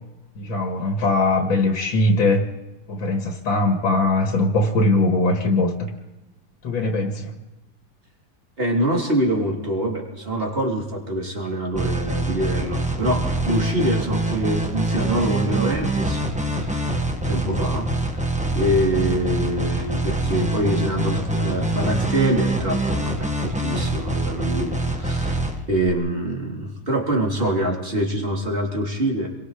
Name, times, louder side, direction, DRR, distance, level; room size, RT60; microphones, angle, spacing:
voice 1, 0.4-2.5 2.9-5.9 6.6-7.4, left 2 dB, 80° left, 3 dB, 2.7 m, -21 dB
voice 2, 8.6-16.2 16.6-16.9 17.3-18.3 18.5-25.4 25.7-29.3, right 1 dB, 30° right, 0 dB, 3.7 m, -25 dB
sound 1, 11.7-25.9, right 2 dB, 5° right, 1.2 m, -24 dB
28.0 x 22.0 x 5.1 m, 1.0 s
omnidirectional pair, 2.1 m